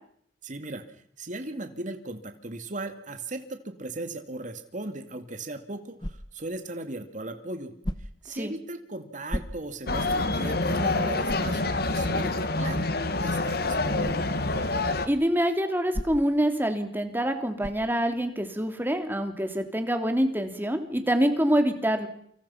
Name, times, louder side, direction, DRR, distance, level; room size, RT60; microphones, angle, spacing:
voice 1, 0.4-0.8 1.2-7.7 8.0-12.9 13.2-14.3, right 2 dB, 45° right, 7 dB, 2.4 m, -37 dB
sound 1, 6.0-6.5 7.8-8.3 9.3-9.9 10.4-10.5 11.2-11.6 14.0-14.3 15.9-16.4 17.6-17.9, equal, 25° left, 1.2 m, -35 dB
sound 2, 9.9-15.1, left 2 dB, 60° left, 1.9 m, -27 dB
voice 2, 15.1-22.1, equal, 10° right, 6 dB, 2.9 m, -26 dB
28.5 x 25.5 x 5.8 m, 0.66 s
head